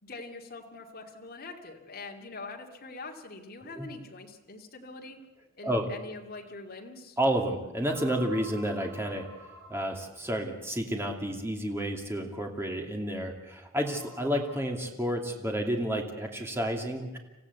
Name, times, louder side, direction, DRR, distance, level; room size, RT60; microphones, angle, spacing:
voice 1, 0.0-5.2 5.6-7.2, left 3 dB, 50° left, 1 dB, 2.6 m, -43 dB
sound 1, 6.0-6.1 7.8-10.2 12.0-12.1 13.7-14.6, right 1 dB, 55° right, 7.8 m, -50 dB
voice 2, 7.2-9.3 9.7-17.2, equal, 10° right, 2 dB, 2.6 m, -30 dB
27.5 x 15.5 x 8.2 m, 1.1 s
head